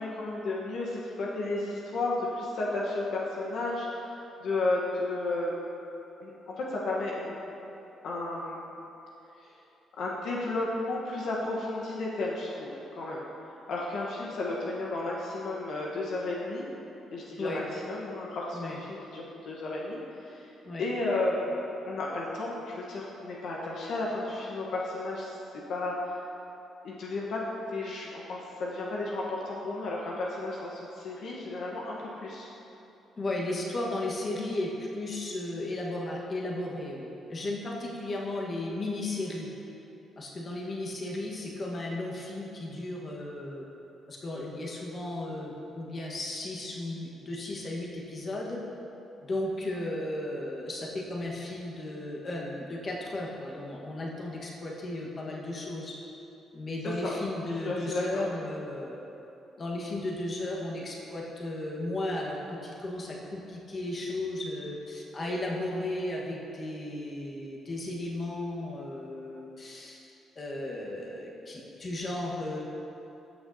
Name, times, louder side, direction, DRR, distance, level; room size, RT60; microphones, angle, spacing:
voice 1, 0.0-5.5 6.2-7.4 8.0-8.6 10.0-13.2 13.7-16.6 17.1-20.0 20.3-20.5 20.8-25.3 25.7-26.2 26.8-27.4 27.7-32.5 56.8-57.1 57.6-58.2, left 2 dB, 70° left, -4 dB, 1.1 m, -33 dB
voice 2, 33.2-39.5 40.2-43.7 44.1-48.6 49.2-55.9 56.5-59.0 59.6-70.0 70.3-72.6, left 1 dB, 40° left, -3 dB, 1.4 m, -35 dB
13.5 x 6.3 x 2.8 m, 2.9 s
cardioid pair, 90°, 0 cm